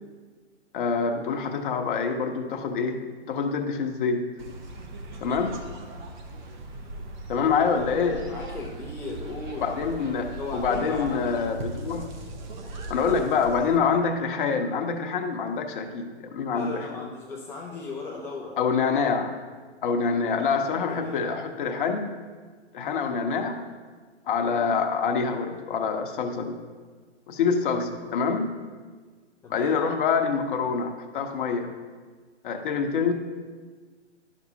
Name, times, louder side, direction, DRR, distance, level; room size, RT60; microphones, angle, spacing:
voice 1, 0.7-4.3 5.2-5.6 7.3-8.3 9.6-12.1 12.9-17.0 18.6-19.4 19.8-22.1 22.7-23.6 24.3-26.6 27.3-28.5 29.5-31.7 32.4-33.1, left 5 dB, 45° left, 4 dB, 0.9 m, -26 dB
sound 1, 4.4-13.8, right 2 dB, 40° right, 0.9 m, -39 dB
voice 2, 8.3-9.8 10.4-11.2 16.5-18.6 20.7-21.4 29.4-29.8, left 3 dB, 5° left, -4 dB, 0.4 m, -37 dB
10.5 x 6.1 x 2.8 m, 1.5 s
hypercardioid pair, 130°, 35 cm